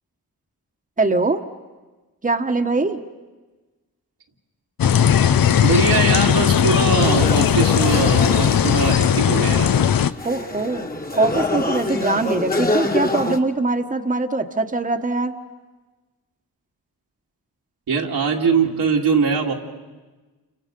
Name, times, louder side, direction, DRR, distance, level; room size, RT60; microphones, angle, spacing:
voice 1, 1.0-1.4 2.2-3.0 10.2-10.9 11.1-15.3, right 3 dB, 20° right, 4 dB, 1.3 m, -22 dB
sound 1, 4.8-10.1, left 9 dB, 65° left, 0.7 m, -17 dB
voice 2, 5.6-9.7 17.9-19.5, right 5 dB, 80° right, -1 dB, 2.4 m, -21 dB
sound 2, 7.0-13.4, left 2 dB, 25° left, 1.7 m, -26 dB
29.0 x 26.5 x 5.3 m, 1.2 s
cardioid pair, 55°, 37 cm